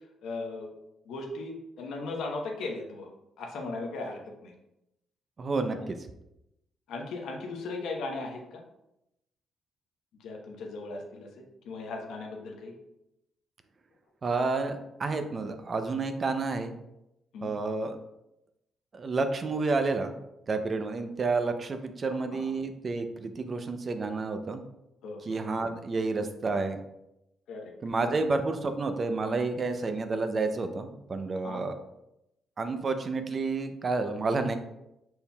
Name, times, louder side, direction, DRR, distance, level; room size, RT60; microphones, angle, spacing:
voice 1, 0.2-0.7 1.0-3.1 3.4-4.5 5.7-5.9 6.9-8.6 10.2-12.7 17.3-17.5 22.1-22.5 25.0-25.4 27.5-27.7 31.4-31.6, left 3 dB, 80° left, 1 dB, 0.9 m, -37 dB
voice 2, 5.4-6.0 14.2-16.7 17.4-18.0 18.9-20.1 20.5-24.6 25.3-26.8 27.8-31.8 32.6-34.6, right 3 dB, 40° right, 8 dB, 0.5 m, -30 dB
5.3 x 4.4 x 2.3 m, 0.87 s
cardioid pair, 90°, 0 cm